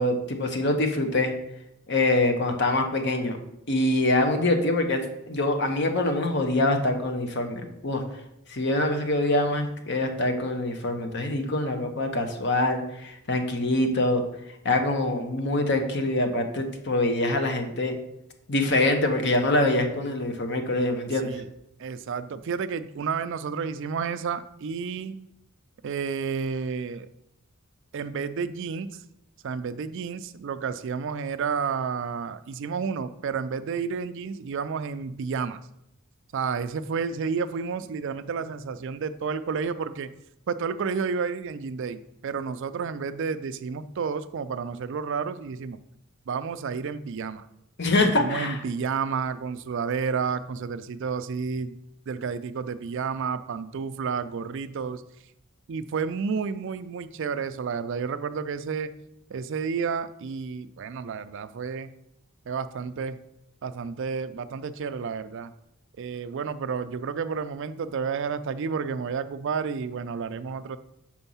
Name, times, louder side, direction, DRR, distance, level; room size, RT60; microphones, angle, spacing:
voice 1, 0.0-1.3 1.9-3.4 3.7-8.0 8.5-14.2 14.6-18.0 18.5-21.4 47.8-48.6, left 2 dB, 55° left, 5 dB, 1.0 m, -24 dB
voice 2, 21.8-25.2 25.8-27.1 27.9-29.0 29.4-35.6 36.3-40.1 40.5-45.8 46.3-47.5 48.2-51.8 52.1-55.0 55.7-58.9 59.3-61.9 62.5-63.2 63.6-65.5 66.0-70.8, right 5 dB, 60° right, 12 dB, 0.4 m, -31 dB
6.2 x 4.5 x 5.5 m, 0.82 s
head